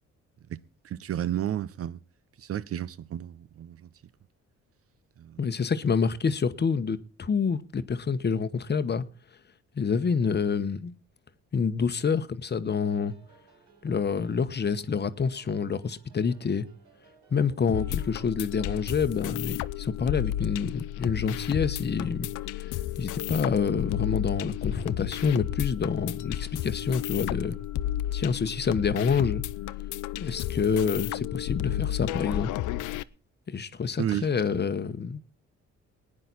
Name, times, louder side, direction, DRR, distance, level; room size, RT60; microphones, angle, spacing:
voice 1, 0.5-2.0 2.4-3.9 5.2-5.5 34.0-34.3, right 11 dB, 50° right, 0.6 m, -32 dB
voice 2, 5.4-9.0 9.8-10.9 11.5-13.1 13.8-16.6 17.3-22.3 22.5-22.7 23.0-27.6 28.1-29.4 30.2-32.5 33.5-35.2, left 6 dB, 35° left, 1.0 m, -27 dB
sound 1, 12.8-18.3, right 5 dB, 85° right, 4.3 m, -60 dB
sound 2, 17.7-33.0, left 13 dB, 85° left, 0.6 m, -32 dB
19.5 x 9.9 x 4.1 m
cardioid pair, 90°, 30 cm